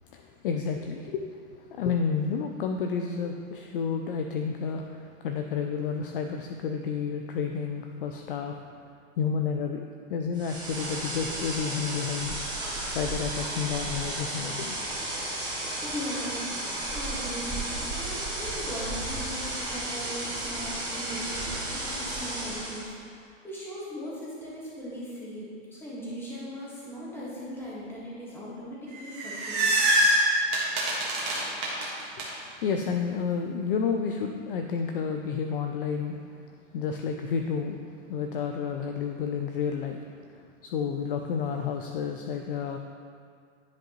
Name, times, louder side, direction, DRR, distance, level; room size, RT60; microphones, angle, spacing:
voice 1, 0.1-8.5 9.2-12.4 12.9-14.8 31.3-31.6 32.1-37.8 38.1-42.8, left 6 dB, 45° left, 4 dB, 0.4 m, -31 dB
sound 1, 10.3-22.9, right 1 dB, 10° right, 1.3 m, -33 dB
voice 2, 15.8-16.4 16.9-29.7, equal, 5° left, -8 dB, 1.5 m, -39 dB
sound 2, 28.9-32.2, right 1 dB, 35° right, 1.6 m, -24 dB
10.0 x 5.1 x 3.0 m, 2.2 s
hypercardioid pair, 140°, 38 cm